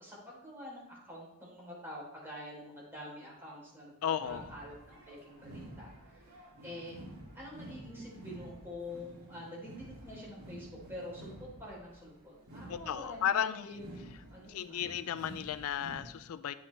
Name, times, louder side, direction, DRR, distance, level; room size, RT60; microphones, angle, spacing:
voice 1, 0.0-7.0 7.3-14.9, left 1 dB, 10° right, -5 dB, 3.3 m, -47 dB
voice 2, 4.0-4.5 12.7-13.7 14.5-16.5, left 9 dB, 75° left, 14 dB, 0.3 m, -34 dB
sound 1, 4.2-16.0, right 1 dB, 85° right, 2.6 m, -51 dB
9.7 x 8.0 x 3.2 m, 0.81 s
head